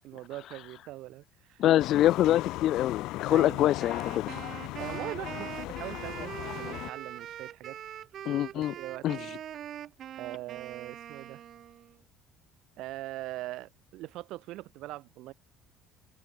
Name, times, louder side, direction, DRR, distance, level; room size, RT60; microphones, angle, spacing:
voice 1, 0.0-1.7 3.3-3.8 4.8-7.8 8.5-9.2 10.1-11.4 12.8-15.3, right 17 dB, 60° right, 6.9 m, -41 dB
voice 2, 1.6-4.3 8.3-8.7 9.0-9.2, left 13 dB, 45° left, 0.6 m, -25 dB
sound 1, 1.8-6.9, left 19 dB, 65° left, 2.9 m, -37 dB
Wind instrument woodwind instrument, 3.8-12.0, right 10 dB, 40° right, 3.1 m, -42 dB
cardioid pair, 165°, 0 cm